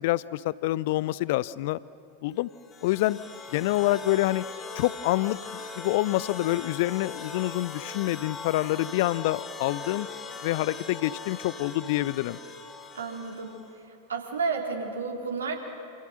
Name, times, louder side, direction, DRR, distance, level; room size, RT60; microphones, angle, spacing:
voice 1, 0.0-1.8 2.2-2.5 2.8-3.2 3.5-4.4 4.8-5.4 5.8-10.1 10.4-12.4, left 17 dB, 50° left, 20 dB, 0.6 m, -26 dB
sound 1, 2.5-13.7, left 4 dB, 20° left, 3.3 m, -40 dB
voice 2, 12.9-13.5 13.9-15.6, right 4 dB, 70° right, 1 dB, 3.8 m, -32 dB
28.5 x 27.5 x 6.5 m, 2.7 s
figure-of-eight pair, 90°, 0 cm